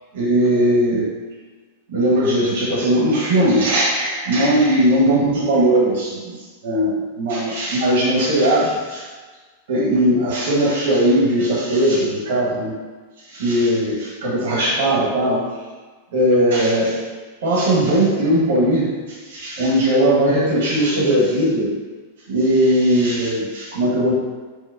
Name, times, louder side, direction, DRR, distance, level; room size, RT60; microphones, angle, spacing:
voice 1, 0.1-1.1 1.9-9.1 9.7-12.7 13.3-15.5 16.1-17.0 17.4-21.7 22.3-24.1, right 1 dB, 60° right, -4 dB, 0.8 m, -18 dB
4.5 x 2.0 x 2.3 m, 1.4 s
figure-of-eight pair, 95°, 0 cm